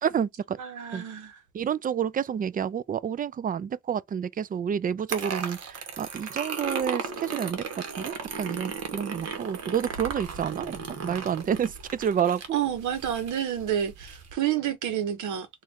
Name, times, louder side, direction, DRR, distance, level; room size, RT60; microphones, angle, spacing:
voice 1, 0.0-0.6 0.9-1.0 1.5-7.6 8.0-10.8 11.0-12.4, right 8 dB, 30° right, 0.4 m, -29 dB
voice 2, 0.6-1.4 12.5-15.6, right 10 dB, 75° right, 1.1 m, -29 dB
sound 1, 5.1-14.3, right 5 dB, 55° right, 1.3 m, -36 dB
4.1 x 2.5 x 3.4 m
cardioid pair, 90°, 30 cm